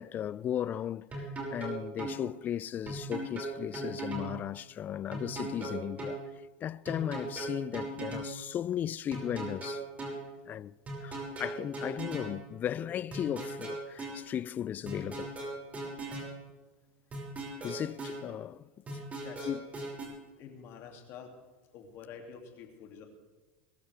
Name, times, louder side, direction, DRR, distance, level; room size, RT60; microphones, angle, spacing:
voice 1, 0.0-6.2 6.6-9.8 10.5-10.7 11.0-15.3 17.6-19.0 19.5-19.7, left 10 dB, 35° left, 0.4 m, -36 dB
sound 1, 1.1-2.2 2.9-4.3 5.1-6.2 6.9-8.3 9.1-10.2 10.9-12.3 13.1-14.2 14.9-16.3 17.1-18.2 18.9-20.1, right 2 dB, 30° right, 6.0 m, -38 dB
voice 2, 19.2-19.5 20.4-21.3 21.7-23.0, left 7 dB, 50° left, 2.7 m, -48 dB
22.0 x 13.5 x 3.5 m
hypercardioid pair, 100°, 5 cm